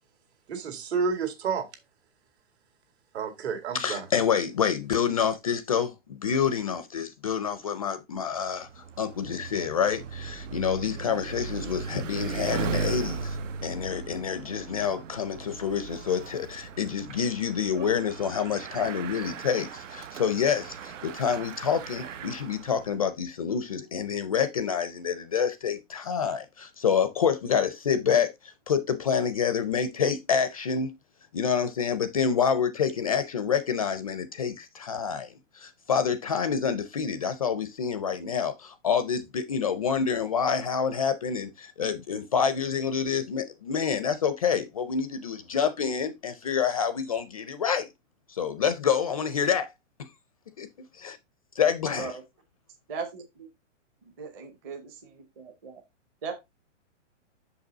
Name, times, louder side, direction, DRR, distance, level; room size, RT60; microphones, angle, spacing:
voice 1, 0.5-1.7 3.1-4.1, right 5 dB, 60° right, 2.3 m, -30 dB
voice 2, 3.7-30.9 31.3-47.9 48.3-49.7 50.0-50.1 50.6-50.7 50.9-51.2 51.6-52.2, left 7 dB, 30° left, 0.4 m, -27 dB
Bicycle, 8.4-23.0, right 5 dB, 80° right, 0.9 m, -37 dB
voice 3, 52.9-53.5 54.2-55.8 56.2-56.3, right 5 dB, 15° right, 0.6 m, -38 dB
6.6 x 5.3 x 3.9 m
hypercardioid pair, 160°, 37 cm